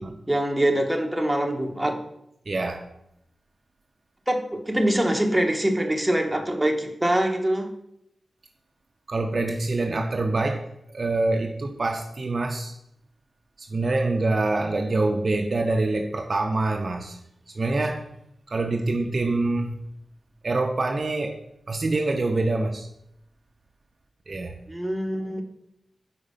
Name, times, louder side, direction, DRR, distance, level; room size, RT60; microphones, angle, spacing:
voice 1, 0.3-2.0 4.3-7.7 24.7-25.4, right 1 dB, 10° right, 0.9 m, -24 dB
voice 2, 2.5-2.9 9.1-12.8 13.6-17.2 17.5-18.1 18.5-19.8 20.4-21.4 21.7-22.9 24.3-24.5, right 2 dB, 55° right, 0.5 m, -25 dB
4.9 x 4.2 x 5.4 m
cardioid pair, 60°, 0 cm